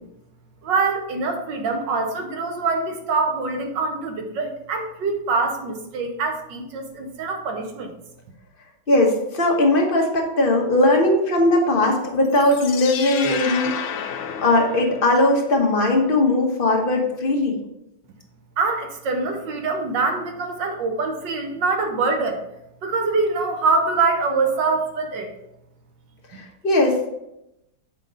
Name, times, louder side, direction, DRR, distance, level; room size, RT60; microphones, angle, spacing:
voice 1, 0.6-7.9 18.6-22.4 22.8-25.3, right 3 dB, 60° right, 5 dB, 1.4 m, -24 dB
voice 2, 8.9-13.9 14.4-17.6 26.6-27.1, left 2 dB, 35° left, 1 dB, 0.9 m, -19 dB
Alien windbells down, 12.3-15.4, left 7 dB, 85° left, 1.7 m, -31 dB
7.3 x 5.1 x 3.9 m, 0.86 s
omnidirectional pair, 2.4 m